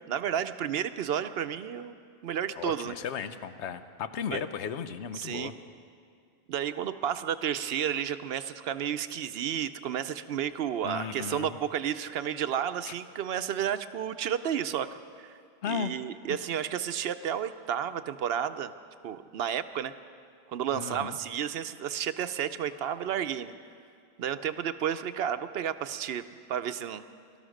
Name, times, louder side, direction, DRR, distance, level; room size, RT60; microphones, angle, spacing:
voice 1, 0.0-1.9 2.2-3.0 4.3-4.4 5.1-5.5 6.5-14.9 15.2-15.4 15.7-18.7 19.0-19.9 20.5-23.5 24.2-26.2 26.5-27.0, right 9 dB, 70° right, 11 dB, 0.8 m, -32 dB
voice 2, 2.6-5.5 10.8-11.6 12.9-13.0 15.6-15.9 16.3-16.4 20.7-21.2, left 7 dB, 90° left, 11 dB, 1.0 m, -35 dB
17.5 x 12.5 x 6.4 m, 2.3 s
omnidirectional pair, 1.1 m